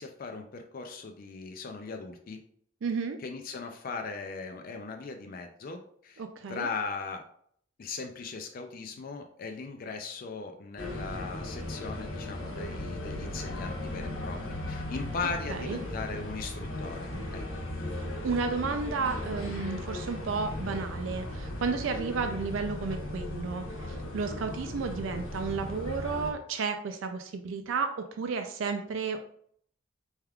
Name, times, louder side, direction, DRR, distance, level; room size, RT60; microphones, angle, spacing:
voice 1, 0.0-2.4 3.2-6.2 6.5-7.2 7.8-17.6, left 4 dB, 45° left, 5 dB, 0.4 m, -38 dB
voice 2, 2.8-3.2 6.2-6.7 15.5-15.8 17.9-29.2, right 4 dB, 70° right, 7 dB, 0.4 m, -32 dB
sound 1, 10.8-26.3, left 1 dB, 80° left, 1.0 m, -37 dB
4.5 x 3.4 x 2.3 m, 0.62 s
head